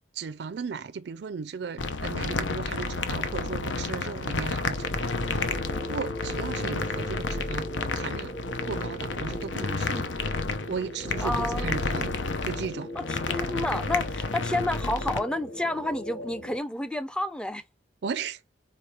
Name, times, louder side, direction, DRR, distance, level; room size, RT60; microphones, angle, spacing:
voice 1, 0.1-5.5 5.9-7.7 7.9-8.3 8.7-10.0 10.7-12.9 18.0-18.4, right 5 dB, 65° right, 0.4 m, -36 dB
sound 1, 1.8-15.2, left 3 dB, 85° left, 0.8 m, -31 dB
sound 2, 4.8-16.6, equal, 40° left, 1.2 m, -40 dB
voice 2, 11.2-11.8 13.0-17.6, left 1 dB, 5° left, 0.5 m, -30 dB
4.9 x 4.4 x 4.3 m
head